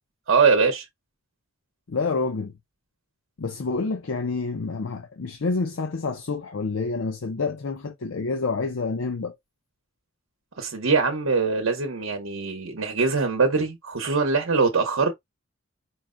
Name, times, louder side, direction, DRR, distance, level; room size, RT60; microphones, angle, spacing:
voice 1, 0.3-0.8 10.6-15.1, right 4 dB, 80° right, 0.8 m, -22 dB
voice 2, 1.9-2.5 3.4-9.4, left 4 dB, 75° left, 0.6 m, -28 dB
4.6 x 2.1 x 3.6 m
head